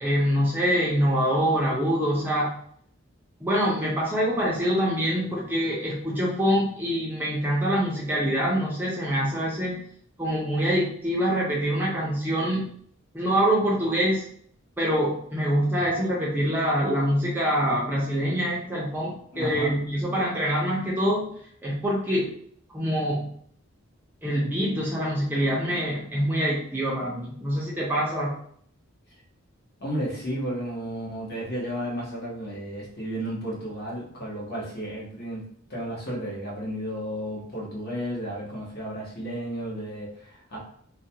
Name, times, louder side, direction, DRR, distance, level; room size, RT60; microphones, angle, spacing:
voice 1, 0.0-2.6 3.4-9.8 10.2-12.7 13.1-14.2 14.8-21.2 21.6-22.3 22.7-23.3 24.2-28.4, equal, 10° right, -6 dB, 0.4 m, -25 dB
voice 2, 19.3-19.8 29.8-35.4 35.7-40.6, equal, 45° left, -5 dB, 0.9 m, -33 dB
2.3 x 2.2 x 2.7 m, 0.63 s
head